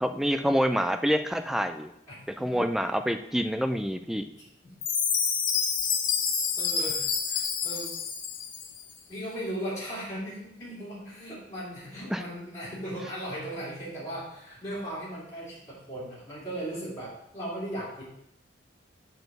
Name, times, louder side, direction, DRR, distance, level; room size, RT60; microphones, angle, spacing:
voice 1, 0.0-1.9 2.4-4.2 12.1-12.2, equal, ahead, 7 dB, 0.3 m, -27 dB
Chime, 4.8-8.8, left 6 dB, 45° left, 0.8 m, -28 dB
voice 2, 6.6-8.0 9.1-18.0, right 1 dB, 15° left, -9 dB, 2.6 m, -37 dB
7.0 x 4.0 x 6.6 m, 0.79 s
head